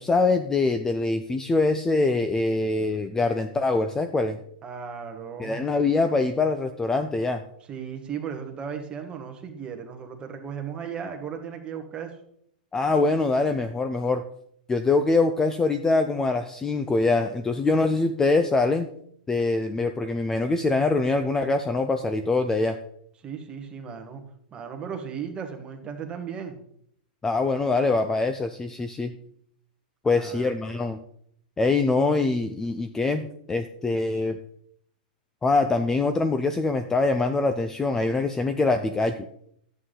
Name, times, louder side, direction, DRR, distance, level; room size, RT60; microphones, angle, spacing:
voice 1, 0.0-4.4 5.4-7.4 12.7-14.2 14.7-18.9 19.3-22.8 27.2-29.1 30.0-31.0 31.6-33.2 33.5-34.4 35.4-39.3, left 3 dB, 10° left, 8 dB, 0.4 m, -24 dB
voice 2, 4.6-5.6 7.7-12.2 23.2-24.2 24.5-26.6 30.1-30.5, right 7 dB, 20° right, 5 dB, 1.4 m, -36 dB
11.0 x 8.1 x 3.8 m, 0.69 s
hypercardioid pair, 145°, 5 cm